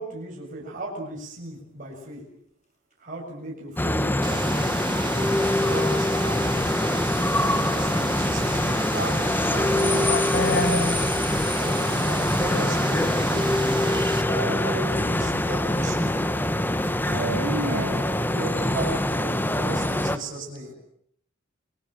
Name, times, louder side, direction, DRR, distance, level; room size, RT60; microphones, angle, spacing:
voice 1, 0.0-2.2 3.0-5.0 5.6-6.7 7.2-9.4 11.6-13.9 14.4-16.4 16.8-16.9 18.3-20.7, right 1 dB, 40° right, 7.0 m, -36 dB
sound 1, 3.8-20.2, left 1 dB, 10° left, 1.3 m, -24 dB
sound 2, 4.2-14.2, right 4 dB, 25° right, 2.7 m, -35 dB
sound 3, 5.2-7.8 9.5-12.1 12.4-12.8 13.3-16.1 17.1-18.6, left 1 dB, 35° left, 7.1 m, -30 dB
voice 2, 9.5-10.5 17.1-18.1, right 1 dB, 75° right, 4.5 m, -33 dB
voice 3, 10.1-11.0, left 2 dB, 50° left, 1.0 m, -26 dB
30.0 x 21.0 x 7.6 m
head